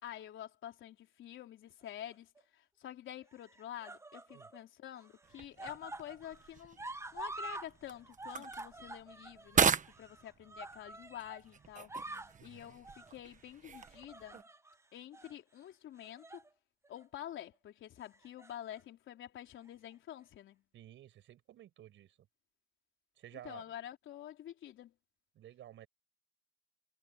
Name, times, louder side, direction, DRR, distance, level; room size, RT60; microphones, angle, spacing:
voice 1, 0.0-6.8 7.1-11.9 12.4-14.4 14.9-16.4 16.9-20.6 23.4-24.9, left 11 dB, 75° left, 3.9 m, -48 dB
sound 1, 1.8-2.4 3.3-4.6 4.9-7.7 8.0-11.4 11.7-12.4 12.8-13.1 13.7-14.8 15.1-15.3 16.0-16.5 16.8-17.0 18.1-18.8 19.7-19.8, right 2 dB, 15° right, 0.9 m, -47 dB
sound 2, 5.2-14.4, right 6 dB, 40° right, 1.2 m, -38 dB
voice 2, 12.3-12.8 20.7-22.2 23.2-23.7 25.3-25.9, right 12 dB, 75° right, 5.6 m, -54 dB
cardioid pair, 90°, 20 cm